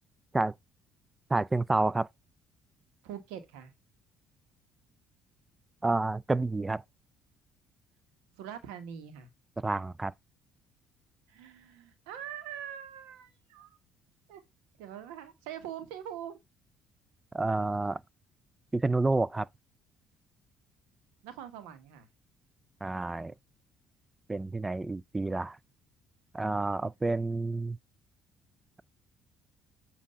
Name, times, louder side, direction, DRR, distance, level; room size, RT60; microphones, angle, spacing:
voice 1, 1.3-2.1 5.8-6.8 9.6-10.1 17.3-18.0 18.7-19.5 22.8-23.3 24.3-25.6 26.3-27.8, right 2 dB, 20° right, 0.4 m, -29 dB
voice 2, 3.0-3.7 8.4-9.3 11.3-13.8 14.3-14.4 14.8-16.4 21.2-22.1, right 9 dB, 75° right, 1.1 m, -43 dB
7.2 x 2.6 x 5.4 m
hypercardioid pair, 55°, 0 cm